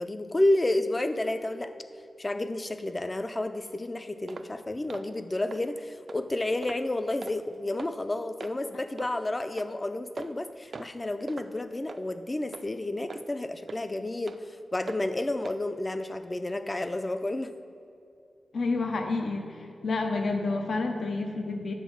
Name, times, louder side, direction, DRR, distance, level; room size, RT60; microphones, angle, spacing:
voice 1, 0.0-1.7 2.2-17.5, left 1 dB, 20° left, 9 dB, 0.4 m, -30 dB
sound 1, 4.3-4.5 4.9-5.1 5.5-5.6 6.1-6.2 6.6-6.9 7.2-7.4 7.8-7.9 8.4-8.6 9.0-9.1 9.6-9.7 10.2-10.4 10.7-11.0 11.3-11.5 11.9-12.0 12.5-12.7 13.1-13.2 13.7-13.8 14.3-14.4 14.9-15.0 15.4-15.6 16.0-16.1, right 4 dB, 55° right, 0.3 m, -41 dB
voice 2, 18.5-21.7, left 3 dB, 70° left, 4 dB, 0.6 m, -29 dB
9.3 x 3.9 x 7.0 m, 2.5 s
wide cardioid pair, 130°, 0 cm